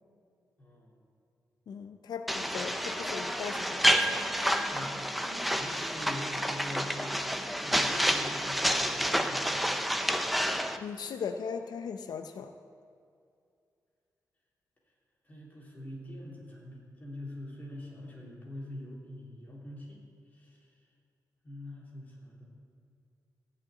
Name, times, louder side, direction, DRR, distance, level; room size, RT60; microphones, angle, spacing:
voice 1, 0.6-1.0 2.7-2.9 4.7-7.2 7.6-9.7 15.2-20.0 20.3-20.7 21.4-22.4, left 1 dB, 25° left, -5 dB, 3.2 m, -44 dB
voice 2, 1.7-4.2 10.8-12.5, left 6 dB, 85° left, 7 dB, 0.5 m, -38 dB
sound 1, 2.3-10.8, equal, ahead, 0.5 m, -29 dB
15.0 x 5.9 x 9.3 m, 2.4 s
wide cardioid pair, 175°, 7 cm